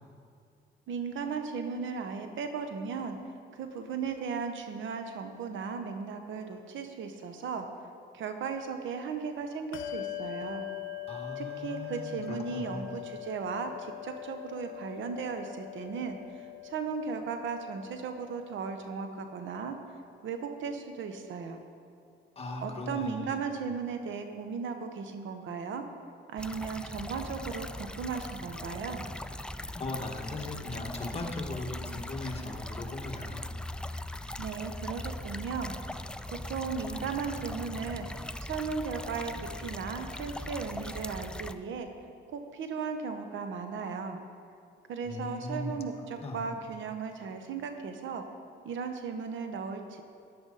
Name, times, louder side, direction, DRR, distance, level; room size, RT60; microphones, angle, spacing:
voice 1, 0.9-3.2 3.5-7.7 8.1-10.6 11.4-19.8 20.2-21.6 22.6-25.8 26.3-27.7 28.0-29.1 34.4-35.7 36.3-38.1 38.4-41.9 42.3-44.2 44.9-48.2 48.6-50.0, right 5 dB, 75° right, 6 dB, 1.1 m, -36 dB
Bell, 9.7-19.7, left 14 dB, 90° left, 0.7 m, -42 dB
voice 2, 11.1-12.9 22.4-23.4 29.7-33.4 45.0-45.8 46.2-46.6, left 2 dB, 30° left, 0 dB, 1.9 m, -38 dB
sound 1, 26.4-41.5, left 1 dB, 5° left, 0.4 m, -40 dB
14.0 x 10.5 x 4.1 m, 2.4 s
cardioid pair, 90°, 20 cm